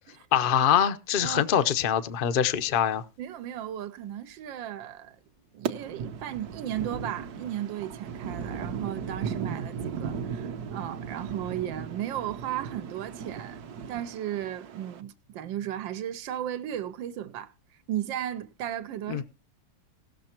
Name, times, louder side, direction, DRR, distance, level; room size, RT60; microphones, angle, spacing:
voice 1, 0.3-3.0 19.1-19.2, left 9 dB, 60° left, 0.5 m, -24 dB
voice 2, 3.2-5.2 5.5-13.6 13.9-17.5 17.9-19.2, right 11 dB, 85° right, 1.5 m, -35 dB
sound 1, 5.7-15.0, right 6 dB, 65° right, 1.2 m, -37 dB
17.5 x 6.7 x 4.3 m
omnidirectional pair, 2.0 m